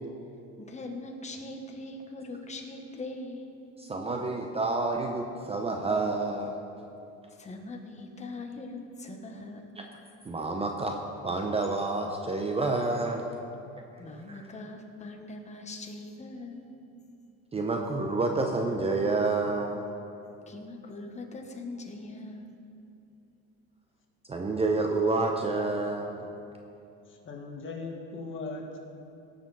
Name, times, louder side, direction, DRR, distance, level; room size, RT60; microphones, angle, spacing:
voice 1, 0.6-3.5 7.3-9.7 14.0-16.7 20.5-22.6, left 2 dB, 20° left, 3 dB, 1.3 m, -41 dB
voice 2, 3.8-6.7 9.8-9.9 10.2-13.3 14.3-14.4 17.5-19.8 24.3-26.3, right 3 dB, 20° right, 2 dB, 0.7 m, -29 dB
voice 3, 27.1-28.8, left 3 dB, 35° left, 2 dB, 1.7 m, -39 dB
17.5 x 6.9 x 4.1 m, 2.7 s
cardioid pair, 120°, 33 cm